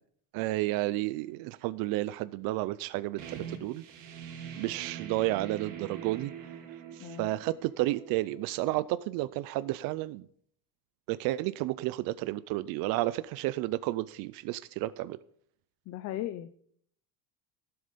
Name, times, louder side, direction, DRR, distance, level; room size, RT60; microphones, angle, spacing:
voice 1, 0.3-3.8 4.6-10.3 11.1-15.2, right 17 dB, 70° right, 16 dB, 0.5 m, -32 dB
sound 1, 3.2-8.6, right 8 dB, 55° right, 2.0 m, -44 dB
voice 2, 15.9-16.6, left 13 dB, 45° left, 11 dB, 0.6 m, -37 dB
15.5 x 7.9 x 5.2 m, 0.63 s
cardioid pair, 180°, 36 cm